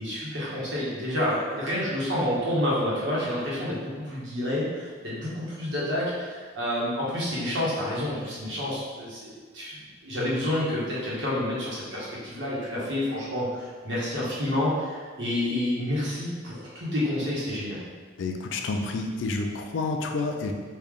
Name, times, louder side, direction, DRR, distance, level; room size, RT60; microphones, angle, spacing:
voice 1, 0.0-17.8, left 1 dB, 65° right, -7 dB, 1.1 m, -29 dB
voice 2, 18.2-20.5, left 3 dB, 70° left, 3 dB, 0.4 m, -29 dB
3.2 x 2.4 x 3.7 m, 1.5 s
head